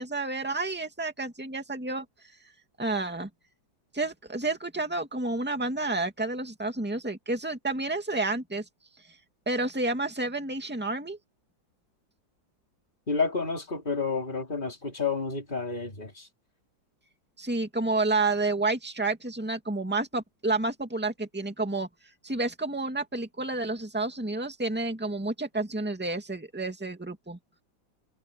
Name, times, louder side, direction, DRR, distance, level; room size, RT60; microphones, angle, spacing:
voice 1, 0.0-2.1 2.8-3.3 3.9-8.6 9.5-11.2 17.4-21.9 22.2-27.4, right 2 dB, 5° right, 2.2 m, -30 dB
voice 2, 13.1-16.3, left 4 dB, 25° left, 3.6 m, -30 dB
omnidirectional pair, 2.1 m